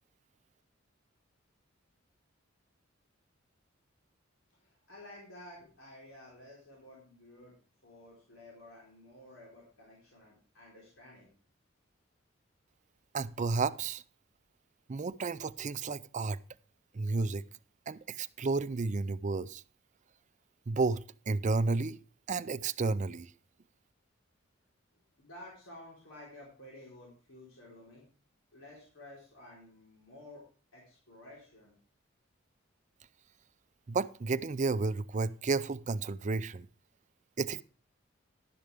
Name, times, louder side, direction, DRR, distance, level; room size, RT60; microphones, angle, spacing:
voice 1, 4.6-7.5 7.8-11.3 25.2-28.1 28.5-30.5 30.7-31.7, left 1 dB, 85° left, 4.2 m, -52 dB
voice 2, 13.1-14.0 14.9-16.4 16.9-17.4 17.9-19.6 20.7-22.0 22.3-23.3 33.9-36.7 37.4-37.6, right 3 dB, 35° right, 0.5 m, -32 dB
12.0 x 10.0 x 3.5 m
head